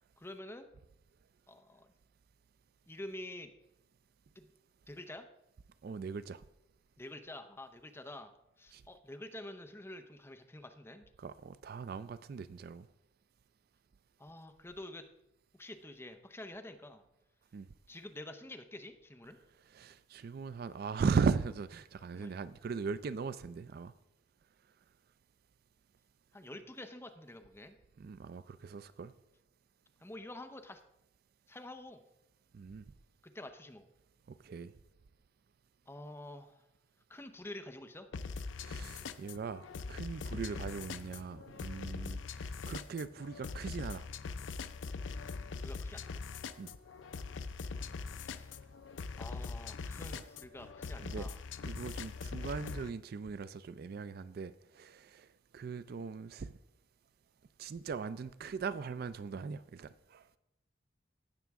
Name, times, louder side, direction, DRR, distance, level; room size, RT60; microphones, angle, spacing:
voice 1, 0.2-0.7 1.5-1.9 2.9-3.5 4.4-4.5 4.9-5.2 7.0-8.3 8.6-11.0 14.2-15.0 15.6-17.0 17.9-19.4 22.1-22.3 26.3-27.8 30.0-30.8 31.5-32.0 33.3-33.9 35.9-36.7 37.1-38.1 45.6-46.2 48.1-48.5 49.2-51.4, left 1 dB, 15° left, 0.7 m, -48 dB
voice 2, 5.8-6.4 8.7-8.8 11.2-12.9 17.5-17.7 19.7-23.9 28.0-29.1 32.5-32.9 34.3-34.7 38.6-44.1 46.6-46.7 50.1-50.2 51.0-51.3 51.6-56.6 57.6-60.3, right 5 dB, 55° right, 0.3 m, -39 dB
sound 1, 38.1-52.9, left 4 dB, 80° left, 0.5 m, -42 dB
16.5 x 6.0 x 3.5 m
head